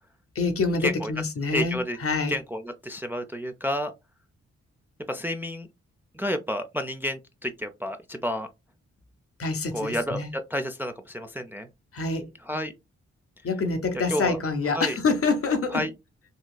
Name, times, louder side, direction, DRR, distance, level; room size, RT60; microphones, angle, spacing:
voice 1, 0.3-2.4 9.4-10.3 11.9-12.3 13.4-15.9, left 4 dB, 50° left, 0.8 m, -26 dB
voice 2, 1.5-2.0 2.3-3.9 5.1-5.7 6.1-8.5 9.7-11.7 12.5-12.7 14.1-14.4 14.7-15.0 15.7-15.9, equal, 5° right, 0.4 m, -30 dB
3.9 x 2.3 x 2.2 m
supercardioid pair, 45°, 30 cm